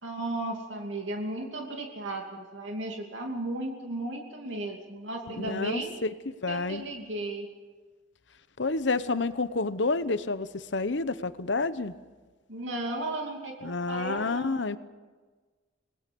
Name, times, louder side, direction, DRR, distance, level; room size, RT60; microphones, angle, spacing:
voice 1, 0.0-6.0 6.5-7.5 12.5-14.7, right 2 dB, 90° right, 1 dB, 2.8 m, -35 dB
voice 2, 5.3-6.8 8.6-11.9 13.6-14.8, left 3 dB, 70° left, 13 dB, 1.0 m, -29 dB
26.0 x 20.5 x 5.4 m, 1.4 s
head